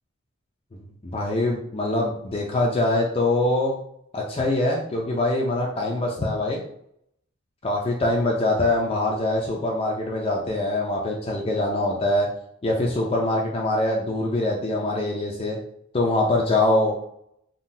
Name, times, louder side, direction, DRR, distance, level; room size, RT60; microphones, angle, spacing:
voice 1, 1.0-3.8 4.1-6.6 7.6-12.3 12.6-15.6 15.9-17.0, left 2 dB, 25° left, -2 dB, 0.4 m, -23 dB
3.7 x 2.2 x 2.6 m, 0.72 s
head